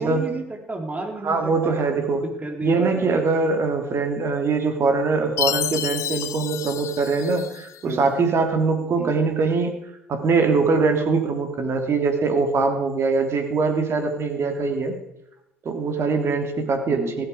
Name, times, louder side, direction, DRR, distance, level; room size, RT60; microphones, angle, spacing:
voice 1, 0.0-1.7 2.2-3.1 7.8-8.1 9.0-9.1 16.9-17.2, right 2 dB, 20° right, 2 dB, 4.0 m, -32 dB
voice 2, 1.2-2.2 2.6-9.7 10.1-14.9 15.6-17.2, right 4 dB, 40° right, 5 dB, 3.0 m, -22 dB
Chime, 5.4-7.8, left 10 dB, 50° left, 0.8 m, -29 dB
16.0 x 13.5 x 5.1 m, 0.85 s
figure-of-eight pair, 55°, 7 cm